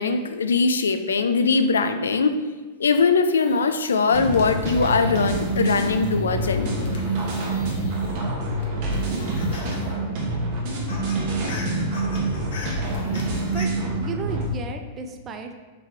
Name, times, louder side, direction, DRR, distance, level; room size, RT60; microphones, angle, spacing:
voice 1, 0.0-2.4 2.8-7.0, left 4 dB, 85° left, 9 dB, 0.3 m, -21 dB
sound 1, 3.3-8.3 8.6-9.9 10.2-10.3 10.6-13.7, left 3 dB, 65° left, 0.9 m, -43 dB
sound 2, 4.1-14.4, right 2 dB, 50° right, 1.2 m, -26 dB
voice 2, 13.5-15.5, right 4 dB, 30° right, 5 dB, 0.5 m, -34 dB
3.8 x 3.2 x 4.3 m, 1.3 s
hypercardioid pair, 105°, 0 cm